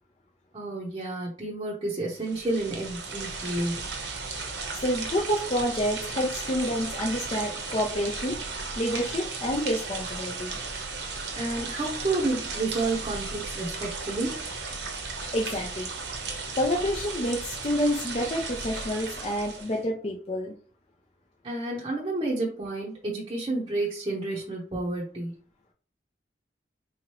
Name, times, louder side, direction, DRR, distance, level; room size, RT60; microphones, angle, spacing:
voice 1, 0.5-3.9 11.3-14.4 21.4-25.3, right 2 dB, 25° right, -5 dB, 0.7 m, -30 dB
sound 1, 2.2-19.8, right 4 dB, 70° right, 0.9 m, -35 dB
voice 2, 4.8-8.4 8.8-10.6 15.3-15.9 16.6-20.5, equal, 35° left, -2 dB, 0.6 m, -28 dB
3.8 x 2.9 x 3.0 m, 0.41 s
head